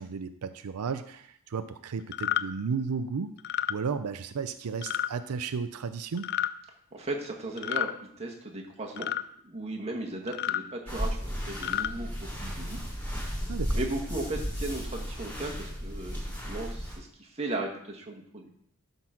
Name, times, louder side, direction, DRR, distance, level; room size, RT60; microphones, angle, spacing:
voice 1, 0.0-3.3 3.7-6.3 13.5-13.8, right 5 dB, 90° right, 10 dB, 0.5 m, -33 dB
sound 1, 2.1-2.4 3.4-3.7 4.8-5.1 6.2-6.5 7.6-7.9 9.0-9.2 10.3-10.6 11.5-11.9, left 11 dB, 50° left, 0.3 m, -30 dB
voice 2, 6.9-9.1 9.4-11.2 11.5-12.8 13.7-18.5, right 2 dB, 30° right, 0 dB, 1.5 m, -36 dB
sound 2, 10.9-16.9, equal, 10° left, 3.3 m, -34 dB
12.0 x 4.0 x 5.8 m, 0.67 s
head